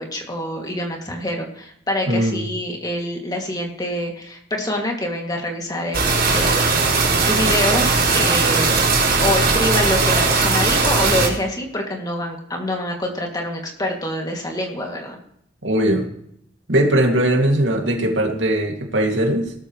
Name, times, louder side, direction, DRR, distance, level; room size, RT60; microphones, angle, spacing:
voice 1, 0.0-8.7 9.2-15.2, left 1 dB, 20° left, 1 dB, 2.5 m, -26 dB
voice 2, 2.1-2.5 15.6-16.1 16.7-19.5, right 1 dB, 90° right, 2 dB, 2.5 m, -19 dB
sound 1, 5.9-11.3, right 4 dB, 55° right, 5.4 m, -18 dB
18.0 x 13.0 x 3.2 m, 0.72 s
head